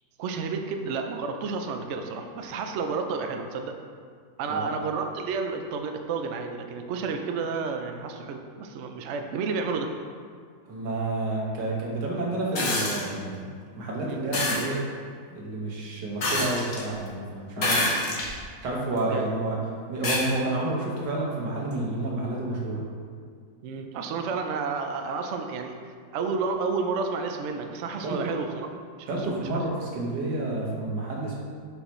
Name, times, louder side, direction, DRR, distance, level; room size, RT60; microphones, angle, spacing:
voice 1, 0.2-3.8 4.4-9.9 14.1-14.2 19.1-19.3 23.6-25.8 26.1-28.7 29.0-29.6, right 4 dB, 70° right, 5 dB, 0.7 m, -31 dB
voice 2, 4.5-4.8 10.7-14.8 15.3-18.0 18.6-19.6 19.9-22.8 28.0-28.4 29.1-31.3, right 2 dB, 90° right, -3 dB, 1.8 m, -30 dB
sound 1, 12.5-13.0 14.3-14.6 16.2-16.8 17.6-18.3 19.0-19.1 20.0-20.2 21.7-21.8, left 2 dB, 60° left, 1.5 m, -26 dB
6.8 x 5.5 x 3.1 m, 2.1 s
omnidirectional pair, 1.8 m